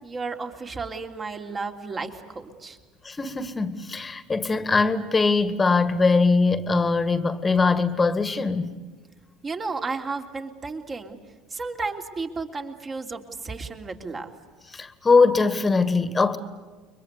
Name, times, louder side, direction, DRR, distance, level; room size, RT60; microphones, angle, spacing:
voice 1, 0.0-2.8 9.4-11.2 11.5-14.3, right 4 dB, 30° right, 3.1 m, -33 dB
voice 2, 3.0-8.7 14.7-16.4, left 4 dB, 20° left, 2.0 m, -21 dB
30.0 x 24.0 x 8.2 m
figure-of-eight pair, 65°, 0 cm